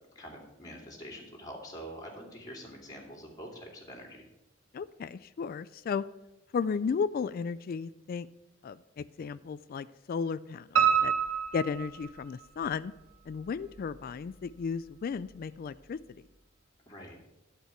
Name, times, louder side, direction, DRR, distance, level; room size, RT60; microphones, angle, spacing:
voice 1, 0.1-4.2 16.9-17.2, equal, 20° left, -1 dB, 2.5 m, -45 dB
voice 2, 4.7-6.0 6.5-8.3 8.6-11.1 11.5-12.9 13.3-16.0, left 5 dB, 45° left, 16 dB, 0.3 m, -34 dB
Piano, 10.8-12.7 13.1-14.0 14.3-14.4 14.8-14.9 15.2-15.3, right 8 dB, 85° right, 1.2 m, -28 dB
11.5 x 4.6 x 8.2 m, 0.92 s
head